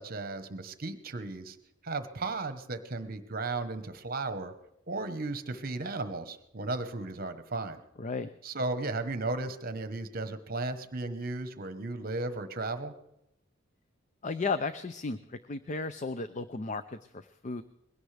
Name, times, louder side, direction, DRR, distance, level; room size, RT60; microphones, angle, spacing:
voice 1, 0.0-1.6 1.8-4.5 4.9-7.8 8.4-12.9, right 3 dB, 50° right, 9 dB, 1.1 m, -35 dB
voice 2, 8.0-8.3 14.2-17.6, left 4 dB, 35° left, 11 dB, 0.5 m, -34 dB
21.5 x 17.0 x 3.4 m, 0.84 s
head